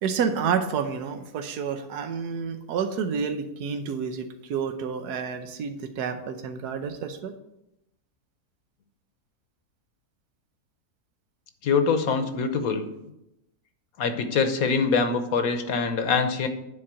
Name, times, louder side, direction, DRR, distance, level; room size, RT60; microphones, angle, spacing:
voice 1, 0.0-7.3, right 6 dB, 85° right, 7 dB, 1.3 m, -29 dB
voice 2, 11.6-12.9 14.0-16.5, left 5 dB, 65° left, 8 dB, 1.3 m, -24 dB
9.6 x 4.2 x 7.4 m, 0.86 s
omnidirectional pair, 1.7 m